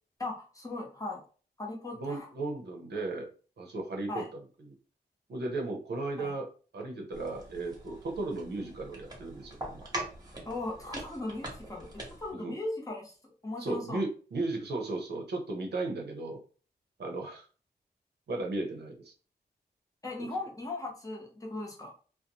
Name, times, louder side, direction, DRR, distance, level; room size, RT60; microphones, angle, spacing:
voice 1, 0.2-1.2 1.6-2.3 4.1-4.3 6.2-6.3 10.5-13.1 13.4-14.0 20.0-21.9, left 2 dB, 20° left, -1 dB, 0.8 m, -38 dB
voice 2, 2.0-3.3 3.6-4.2 4.6-4.8 5.3-9.9 12.3-12.6 13.6-16.4 17.0-17.4 18.3-19.1 20.2-20.3, right 2 dB, 80° right, 1 dB, 0.7 m, -35 dB
sound 1, 7.1-12.3, right 1 dB, 25° right, 0.9 m, -43 dB
2.5 x 2.1 x 2.8 m, 0.38 s
wide cardioid pair, 105°, 17 cm